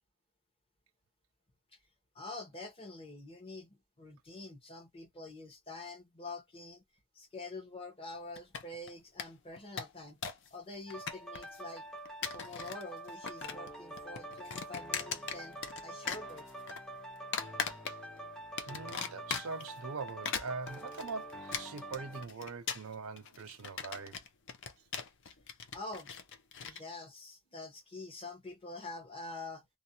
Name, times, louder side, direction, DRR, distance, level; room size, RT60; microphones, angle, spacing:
voice 1, 2.1-6.8 7.1-10.2 10.5-11.8 12.3-16.5 25.7-26.1 26.6-29.7, left 2 dB, 25° left, 0.8 m, -46 dB
sound 1, 8.4-8.9 9.2-9.3 9.6-10.5 10.7-11.6 12.1-12.8 13.1-13.7 14.0-16.8 17.3-18.2 18.6-19.7 20.1-26.8, left 6 dB, 55° left, 0.5 m, -39 dB
sound 2, 10.9-22.3, right 1 dB, 5° left, 0.4 m, -46 dB
voice 2, 18.7-24.2 26.7-26.8, right 4 dB, 70° right, 0.5 m, -42 dB
2.5 x 2.0 x 2.7 m
head